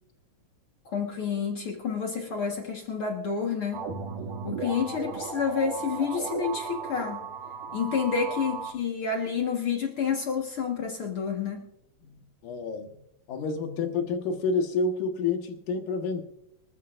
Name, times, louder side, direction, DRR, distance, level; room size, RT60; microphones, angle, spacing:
voice 1, 0.9-3.9 4.4-7.2 7.7-11.6, left 6 dB, 50° left, 1 dB, 2.2 m, -29 dB
sound 1, 3.7-8.7, right 5 dB, 80° right, 3.2 m, -36 dB
voice 2, 12.4-12.9 13.3-16.2, left 4 dB, 80° left, 4 dB, 3.0 m, -28 dB
26.0 x 13.5 x 2.6 m, 0.81 s
omnidirectional pair, 3.6 m